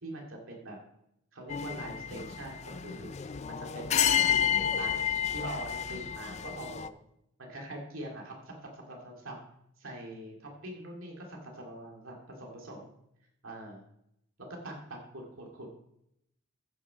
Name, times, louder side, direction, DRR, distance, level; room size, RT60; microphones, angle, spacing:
voice 1, 0.0-0.8 1.3-3.1 3.5-6.9 7.4-9.4 9.8-12.9 13.4-13.8 14.4-15.7, right 1 dB, 90° right, 0 dB, 2.4 m, -43 dB
sound 1, 1.5-6.9, left 8 dB, 35° left, 0.4 m, -30 dB
14.5 x 6.1 x 5.1 m, 0.78 s
head